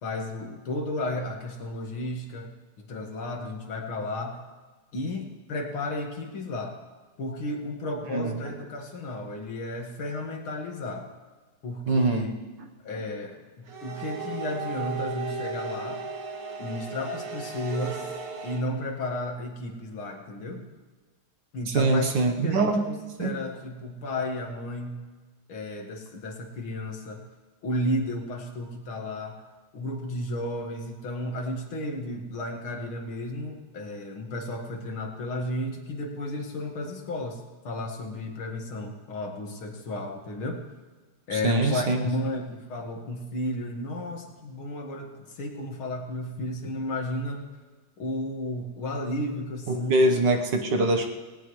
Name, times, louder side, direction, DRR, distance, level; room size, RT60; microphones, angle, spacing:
voice 1, 0.0-2.5 2.8-4.4 4.9-6.8 7.2-11.1 11.6-12.3 12.8-16.0 16.6-18.1 18.4-20.7 21.5-22.1 22.4-25.0 25.5-27.2 27.6-29.4 29.7-40.6 41.3-47.5 48.0-50.0, left 1 dB, 75° left, 2 dB, 2.7 m, -33 dB
voice 2, 11.9-12.3 21.7-22.9 23.2-23.3 41.3-42.0 49.7-51.1, right 2 dB, 60° right, 4 dB, 1.8 m, -23 dB
sound 1, 13.7-18.6, right 4 dB, 80° right, 2.7 m, -35 dB
18.5 x 18.0 x 3.2 m, 1.3 s
omnidirectional pair, 2.3 m